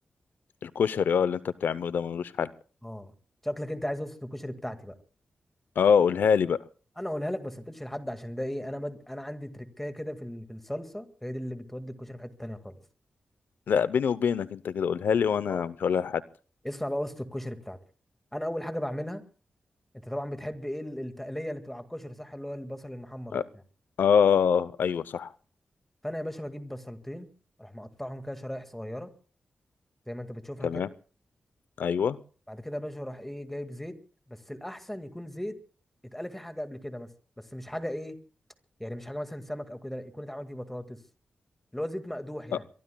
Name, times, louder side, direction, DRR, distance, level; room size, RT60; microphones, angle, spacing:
voice 1, 0.6-2.5 5.8-6.6 13.7-16.2 23.3-23.4 24.0-25.3 30.6-30.9 31.8-32.2, left 7 dB, 85° left, 16 dB, 0.6 m, -25 dB
voice 2, 2.8-3.1 3.4-5.0 7.0-12.8 15.5-15.7 16.6-17.8 18.3-19.2 20.0-23.4 26.0-27.3 27.6-29.1 30.1-30.8 32.5-34.0 34.3-35.6 36.0-37.1 37.4-38.2 38.8-41.0 41.7-42.7, equal, 5° left, 8 dB, 1.9 m, -36 dB
23.5 x 23.5 x 2.3 m, 0.39 s
cardioid pair, 65°, 3 cm